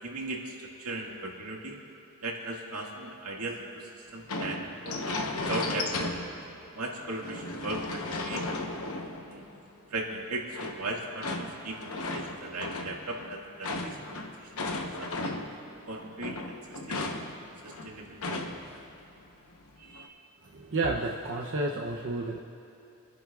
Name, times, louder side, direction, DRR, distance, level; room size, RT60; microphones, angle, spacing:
voice 1, 0.0-1.8 2.2-6.1 6.8-8.5 9.3-9.5 9.9-14.6 15.0-15.4 15.9-17.1 17.6-18.2 19.8-20.2, right 2 dB, 85° right, -1 dB, 1.9 m, -38 dB
sound 1, 4.3-6.6 7.0-9.6 10.5-15.7 16.0-18.8 19.1-19.2 19.7-20.1, left 2 dB, 70° left, 1.0 m, -35 dB
voice 2, 20.4-22.4, right 2 dB, 55° right, -2 dB, 0.7 m, -31 dB
29.5 x 10.5 x 2.4 m, 3.0 s
head